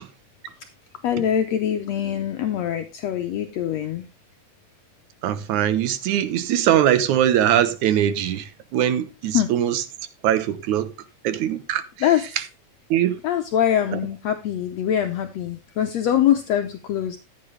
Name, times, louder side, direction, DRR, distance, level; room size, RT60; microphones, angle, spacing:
voice 1, 1.0-4.1 9.3-9.5 12.0-12.3 13.2-17.2, left 10 dB, 70° left, 1.9 m, -23 dB
voice 2, 5.2-9.8 10.2-10.9 11.2-11.8 12.9-13.2, right 10 dB, 80° right, 2.4 m, -21 dB
14.5 x 8.5 x 3.2 m
omnidirectional pair, 3.4 m